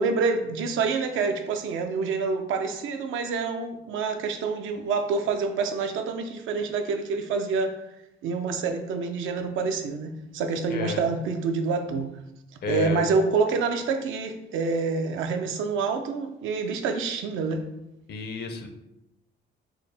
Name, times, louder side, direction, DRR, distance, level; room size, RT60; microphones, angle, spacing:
voice 1, 0.0-7.7 8.2-12.1 12.7-17.6, right 4 dB, 85° right, 6 dB, 0.5 m, -27 dB
voice 2, 10.7-11.0 12.6-13.0 18.1-18.7, left 3 dB, 55° left, 5 dB, 0.6 m, -31 dB
4.5 x 2.1 x 3.3 m, 0.89 s
cardioid pair, 90°, 20 cm